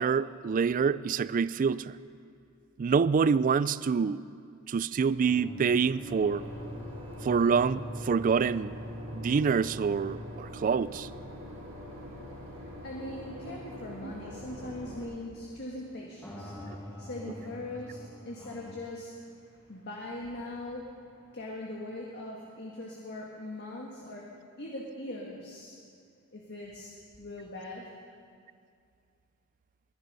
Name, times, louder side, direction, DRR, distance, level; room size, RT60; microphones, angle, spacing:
voice 1, 0.0-2.0 2.8-4.2 4.7-6.4 7.2-8.8 9.1-11.1 14.0-14.1, right 6 dB, 40° right, 17 dB, 0.3 m, -26 dB
sound 1, 5.2-11.7 12.0-12.1 12.7-12.9 16.2-18.8, equal, 10° left, 2.0 m, -44 dB
Boat Water vehicle / Engine, 6.1-15.0, equal, 80° right, 5.2 m, -44 dB
voice 2, 11.9-24.3 24.6-25.8 26.3-26.9 27.2-27.9, left 1 dB, 50° left, -2 dB, 1.6 m, -41 dB
21.5 x 10.5 x 5.4 m, 2.3 s
head